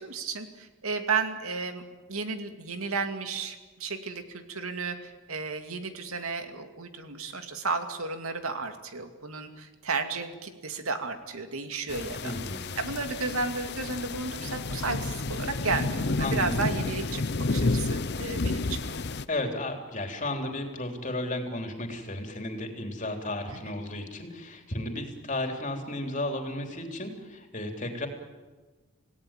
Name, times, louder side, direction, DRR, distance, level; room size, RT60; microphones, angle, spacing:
voice 1, 0.0-1.8 2.1-12.3 12.8-18.9 23.7-23.8, right 4 dB, 85° right, 6 dB, 2.5 m, -33 dB
sound 1, 11.9-19.2, left 3 dB, 50° left, 0.8 m, -31 dB
voice 2, 12.2-12.7 16.2-16.5 19.3-28.1, left 1 dB, 35° left, 4 dB, 3.5 m, -33 dB
27.5 x 17.5 x 9.1 m, 1.3 s
head